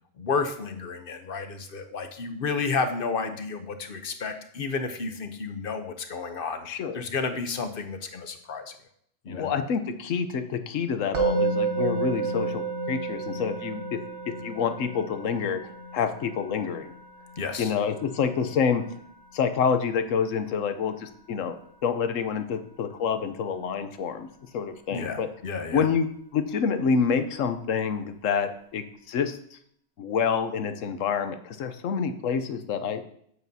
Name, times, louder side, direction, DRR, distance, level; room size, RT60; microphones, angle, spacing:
voice 1, 0.2-6.7 6.9-8.7 9.2-9.5 17.4-17.7 24.9-25.9, left 4 dB, 50° left, 7 dB, 1.0 m, -31 dB
voice 2, 6.7-7.0 9.3-14.0 14.4-15.6 15.9-16.9 17.6-18.8 19.3-21.5 21.8-24.3 24.5-25.3 25.7-29.6 30.0-33.0, left 6 dB, 85° left, 9 dB, 1.1 m, -27 dB
Musical instrument, 11.1-22.3, right 4 dB, 65° right, 1.3 m, -33 dB
9.0 x 8.5 x 2.8 m, 0.66 s
omnidirectional pair, 1.3 m